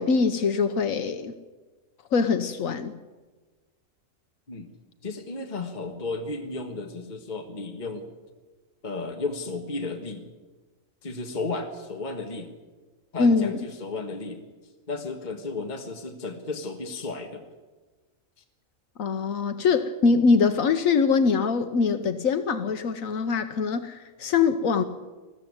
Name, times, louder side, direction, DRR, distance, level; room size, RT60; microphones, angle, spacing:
voice 1, 0.0-1.3 2.1-3.0 13.2-13.5 19.0-24.8, left 5 dB, 80° left, 9 dB, 1.3 m, -23 dB
voice 2, 5.0-8.1 8.8-10.3 11.0-12.5 13.1-14.4 14.9-17.5, left 3 dB, 35° left, 4 dB, 1.6 m, -33 dB
21.0 x 14.5 x 9.6 m, 1.3 s
omnidirectional pair, 1.4 m